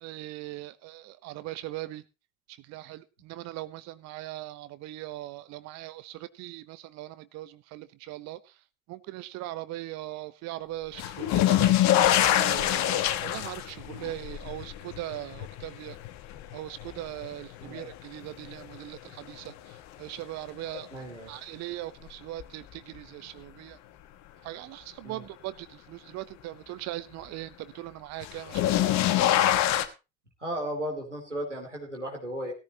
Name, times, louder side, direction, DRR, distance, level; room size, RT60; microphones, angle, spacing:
voice 1, 0.0-2.0 2.7-8.4 8.9-11.7 12.2-16.0 16.5-23.8 24.4-29.0, right 16 dB, 50° right, 15 dB, 0.9 m, -40 dB
sound 1, 11.0-18.0 18.4-19.1 20.7-20.8 22.4-22.5 28.2-29.9, left 12 dB, 50° left, 1.3 m, -25 dB
voice 2, 20.9-21.3 25.0-25.2 30.4-32.5, equal, 90° right, 0 dB, 2.9 m, -35 dB
17.0 x 14.0 x 2.9 m, 0.29 s
figure-of-eight pair, 55°, 35 cm